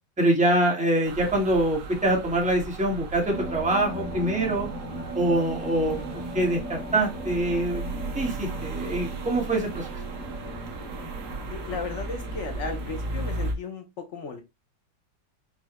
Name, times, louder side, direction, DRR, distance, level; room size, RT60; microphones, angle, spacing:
voice 1, 0.2-4.7 5.1-6.0 6.3-7.8 8.1-9.9, right 1 dB, 5° right, 0 dB, 0.8 m, -24 dB
sound 1, 1.0-13.5, right 3 dB, 70° right, 1.4 m, -36 dB
sound 2, 3.3-13.5, right 1 dB, 35° right, 1.3 m, -38 dB
voice 2, 11.5-14.4, left 4 dB, 65° left, 4 dB, 0.7 m, -35 dB
5.4 x 2.1 x 2.8 m, 0.23 s
omnidirectional pair, 1.9 m